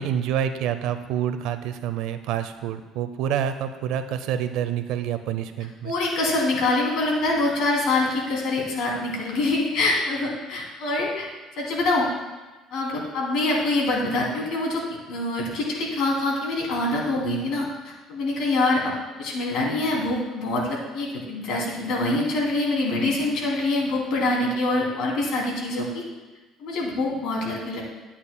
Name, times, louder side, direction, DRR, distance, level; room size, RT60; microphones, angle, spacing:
voice 1, 0.0-5.9, right 9 dB, 80° right, 10 dB, 0.6 m, -27 dB
voice 2, 5.8-11.3 11.6-12.1 12.7-14.8 15.1-18.9 19.2-26.0 26.6-27.8, left 2 dB, 75° left, -3 dB, 2.8 m, -25 dB
12.0 x 8.6 x 2.2 m, 1.2 s
cardioid pair, 115°, 0 cm